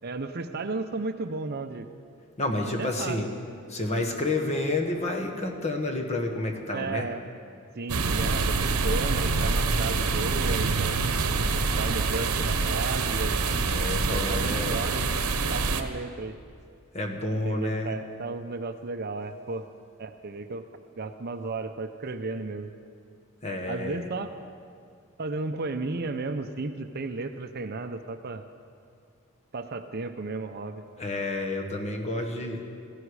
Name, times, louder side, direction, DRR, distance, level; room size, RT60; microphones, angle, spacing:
voice 1, 0.0-1.9 2.8-3.2 6.7-7.2 7.8-11.0 11.8-13.4 14.1-15.2 15.5-16.4 17.3-19.7 20.0-20.7 21.0-22.7 23.7-24.3 25.2-28.4 29.5-30.8, right 3 dB, 45° right, 8 dB, 0.6 m, -34 dB
voice 2, 2.4-3.3 3.7-7.1 13.7-14.8 16.9-18.0 23.4-24.0 31.0-32.6, left 2 dB, 30° left, 2 dB, 1.5 m, -30 dB
sound 1, 7.9-15.8, right 4 dB, 85° right, 0.9 m, -26 dB
16.5 x 15.0 x 4.8 m, 2.4 s
head